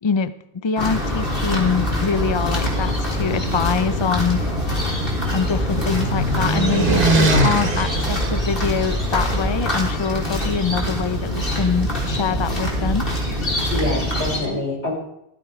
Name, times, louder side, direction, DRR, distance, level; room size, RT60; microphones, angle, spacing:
voice 1, 0.0-0.3 0.6-4.4 5.3-13.1, left 5 dB, 35° left, 12 dB, 0.5 m, -24 dB
sound 1, 0.8-14.4, equal, 50° left, 3.8 m, -24 dB
sound 2, 4.1-9.2, right 1 dB, 50° right, 1.6 m, -23 dB
voice 2, 13.7-14.9, left 2 dB, 75° left, -2 dB, 4.9 m, -25 dB
15.0 x 14.0 x 4.7 m, 0.80 s
omnidirectional pair, 1.2 m